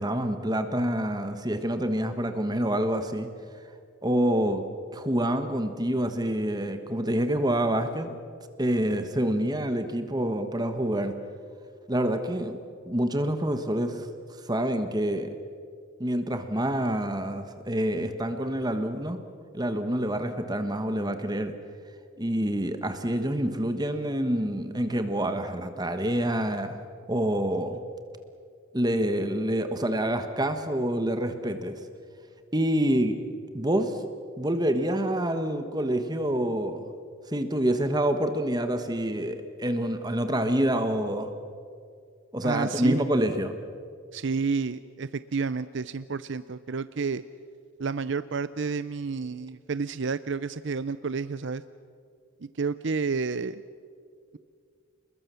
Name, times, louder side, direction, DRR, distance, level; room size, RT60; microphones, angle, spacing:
voice 1, 0.0-3.3 4.0-4.6 4.9-8.2 8.6-11.1 11.9-12.6 12.9-14.1 14.4-15.3 16.0-19.2 19.5-21.5 22.2-26.8 27.1-27.8 28.7-31.7 32.5-33.1 33.5-34.0 34.4-36.8 37.3-41.3 42.3-43.5, right 1 dB, 20° right, 8 dB, 1.3 m, -27 dB
voice 2, 42.4-43.0 44.1-47.2 47.8-51.6 52.4-53.6, right 4 dB, 60° right, 14 dB, 0.6 m, -30 dB
30.0 x 21.0 x 7.0 m, 2.2 s
head